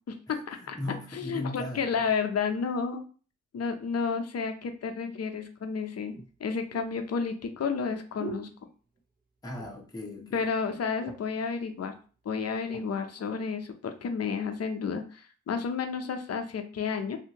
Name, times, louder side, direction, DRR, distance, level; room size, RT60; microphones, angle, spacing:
voice 1, 0.1-0.8 1.1-3.0 3.5-6.1 6.4-8.5 10.3-11.9 12.2-17.2, left 5 dB, 50° left, 6 dB, 0.6 m, -31 dB
voice 2, 0.6-1.9 9.4-10.5, left 1 dB, 10° left, -1 dB, 0.8 m, -37 dB
sound 1, 5.2-5.3 6.1-9.2 9.5-10.0 10.3-10.4 10.7-11.4 12.1-12.9 13.5-13.7, right 4 dB, 30° right, 0.9 m, -45 dB
2.8 x 2.5 x 2.8 m, 0.38 s
cardioid pair, 50°, 32 cm